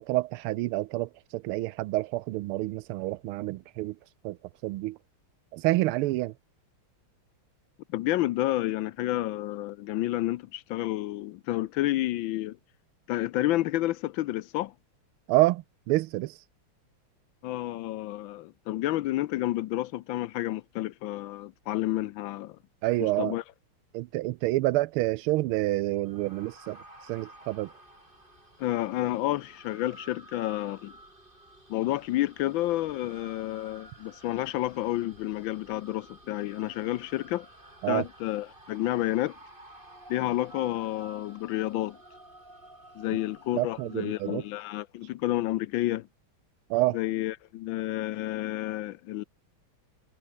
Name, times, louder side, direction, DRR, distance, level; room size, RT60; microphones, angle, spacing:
voice 1, 0.0-4.0 4.2-4.4 4.6-5.0 5.5-6.3 15.3-16.4 22.8-23.4 23.9-26.8 27.1-27.7 37.8-38.0 43.5-44.4 46.7-47.0, right 18 dB, 85° right, 1.5 m, -28 dB
voice 2, 7.9-12.6 13.1-14.7 17.4-22.6 23.0-23.4 28.6-30.9 31.7-37.5 37.9-39.4 40.1-42.0 42.9-46.1 46.9-49.2, left 15 dB, 75° left, 1.3 m, -30 dB
sound 1, 26.0-44.5, right 1 dB, 20° right, 6.6 m, -52 dB
omnidirectional pair, 2.3 m